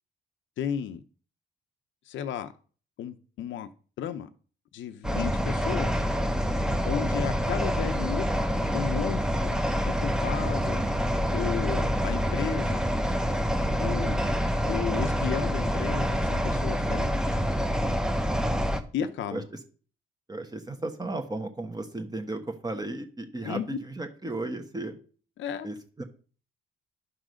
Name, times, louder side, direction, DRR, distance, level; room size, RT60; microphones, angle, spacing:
voice 1, 0.6-1.0 2.1-2.5 3.0-3.7 4.0-4.3 4.7-6.0 6.9-8.2 8.7-9.6 10.0-10.8 11.3-12.8 13.8-14.2 14.7-17.1 18.9-19.4 23.4-23.7 25.4-25.7, left 9 dB, 75° left, 0.7 m, -33 dB
sound 1, 5.0-18.8, equal, 5° right, 1.0 m, -27 dB
voice 2, 5.0-5.4 10.7-11.0 14.2-14.5 19.3-19.6 20.3-25.0 25.6-26.0, right 2 dB, 20° right, 1.4 m, -35 dB
11.0 x 3.8 x 6.3 m
cardioid pair, 90°, 20 cm